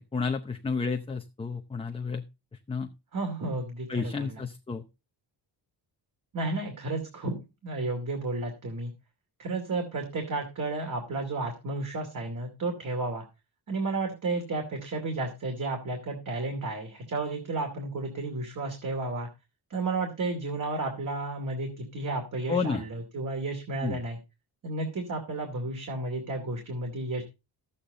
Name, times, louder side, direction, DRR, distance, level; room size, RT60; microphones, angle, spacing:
voice 1, 0.0-2.2 2.7-2.9 3.9-4.8 22.5-22.8 23.8-24.0, left 4 dB, 15° left, 4 dB, 0.7 m, -31 dB
voice 2, 3.1-4.4 6.3-8.9 9.4-13.2 13.7-19.3 19.7-24.2 24.6-27.2, right 2 dB, 45° right, 3 dB, 2.7 m, -32 dB
13.5 x 8.6 x 3.7 m, 0.27 s
wide cardioid pair, 170°, 44 cm